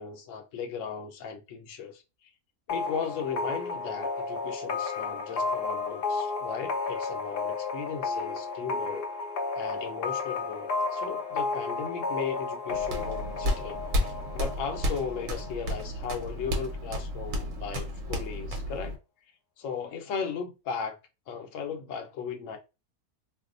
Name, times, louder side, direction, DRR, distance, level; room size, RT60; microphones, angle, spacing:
voice 1, 0.0-2.3 2.7-9.1 9.5-19.0 19.6-21.0 21.3-22.6, left 6 dB, 65° left, 0.9 m, -36 dB
sound 1, 2.7-16.2, left 4 dB, 85° left, 0.5 m, -33 dB
sound 2, 12.7-18.9, equal, 65° right, 1.1 m, -32 dB
2.6 x 2.1 x 3.7 m
omnidirectional pair, 1.6 m